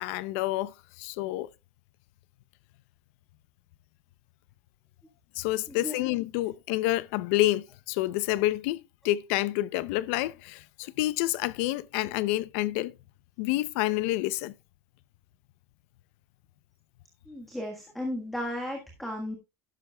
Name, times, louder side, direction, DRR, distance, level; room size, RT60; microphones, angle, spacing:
voice 1, 0.0-1.5 5.3-12.9 13.4-14.5, left 16 dB, 65° left, 0.6 m, -28 dB
voice 2, 5.7-6.0 17.3-19.4, left 1 dB, ahead, 1.5 m, -35 dB
12.5 x 11.0 x 2.3 m
cardioid pair, 180°, 8 cm